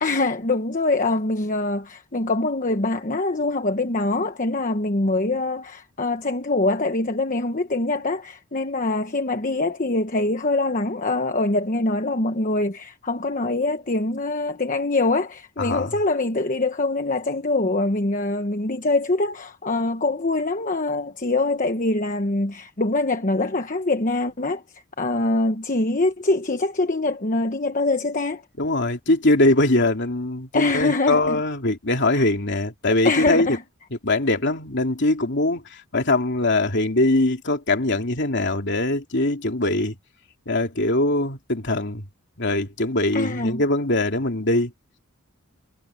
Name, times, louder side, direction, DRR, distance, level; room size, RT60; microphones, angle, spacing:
voice 1, 0.0-28.4 30.5-31.4 32.1-32.2 33.0-33.6 43.1-43.6, left 2 dB, 40° left, 1.1 m, -24 dB
voice 2, 15.6-16.0 28.6-33.6 33.9-39.9 40.5-42.0 42.4-44.7, left 2 dB, 55° left, 3.0 m, -22 dB
head